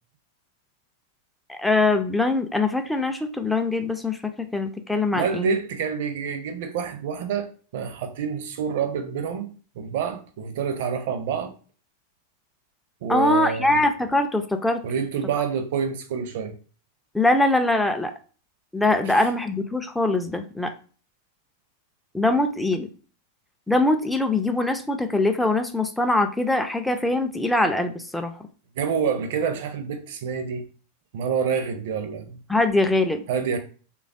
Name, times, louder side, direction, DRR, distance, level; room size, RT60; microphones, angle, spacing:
voice 1, 1.5-5.5 13.1-14.8 17.1-18.1 18.7-20.7 22.1-22.9 23.7-28.3 32.5-33.2, left 2 dB, 5° left, 0.3 m, -22 dB
voice 2, 5.1-7.5 7.7-11.5 13.0-13.8 14.8-16.5 19.0-19.2 28.8-30.6 31.1-32.4 33.3-33.6, right 6 dB, 55° right, 0.5 m, -27 dB
3.2 x 2.3 x 2.4 m
figure-of-eight pair, 90°, 0 cm